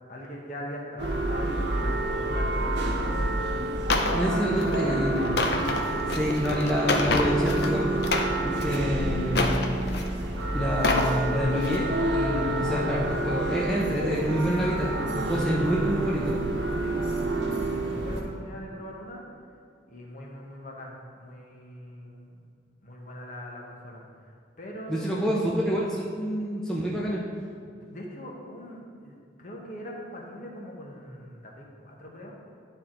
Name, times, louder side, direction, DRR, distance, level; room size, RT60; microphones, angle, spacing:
voice 1, 0.1-5.4 12.4-12.6 14.5-14.7 16.8-19.2 19.9-22.4 22.8-25.9 27.9-32.4, equal, 45° left, -1 dB, 1.2 m, -42 dB
sound 1, 1.0-18.2, right 1 dB, 75° right, 1.1 m, -28 dB
sound 2, 3.9-4.2 4.6-4.8 5.2-7.7 8.0-8.8 9.3-10.1 10.7-11.1 11.6-11.8, left 3 dB, 60° left, 0.6 m, -27 dB
voice 2, 4.1-5.2 6.1-7.9 8.4-9.5 10.5-16.3 24.9-27.2, equal, 5° left, -6 dB, 0.7 m, -27 dB
11.0 x 4.6 x 3.8 m, 2.2 s
head